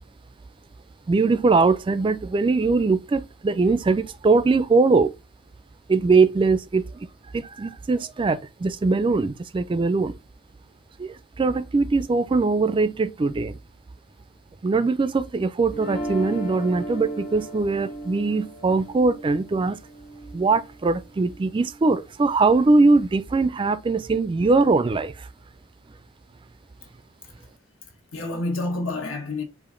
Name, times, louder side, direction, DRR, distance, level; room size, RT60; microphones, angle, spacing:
voice 1, 1.1-5.1 5.9-7.1 7.3-10.1 11.0-13.6 14.6-19.8 20.3-25.3, right 3 dB, 25° right, 0.3 m, -21 dB
sound 1, 15.7-21.8, right 1 dB, 40° left, 1.7 m, -36 dB
voice 2, 27.8-29.4, left 2 dB, 85° left, 1.4 m, -30 dB
5.0 x 2.5 x 3.7 m
head